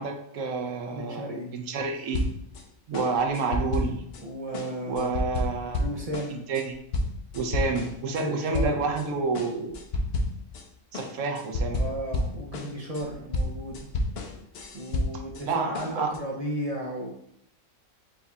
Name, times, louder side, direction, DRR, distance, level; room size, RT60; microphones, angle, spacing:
voice 1, 0.0-2.2 2.9-4.0 4.8-5.9 6.5-6.8 7.3-9.8 10.9-11.8 15.4-16.2, right 4 dB, 70° right, 3 dB, 1.0 m, -29 dB
voice 2, 0.9-1.6 4.2-5.1 5.8-6.5 8.0-8.8 11.7-13.9 14.7-17.1, right 1 dB, 50° right, -1 dB, 0.4 m, -34 dB
sound 1, 2.1-2.6 2.9-4.2 4.5-8.3 8.5-9.1 9.3-10.7 10.9-15.5 15.7-16.2, left 1 dB, 60° left, 0.7 m, -30 dB
4.5 x 2.4 x 4.0 m, 0.75 s
omnidirectional pair, 1.4 m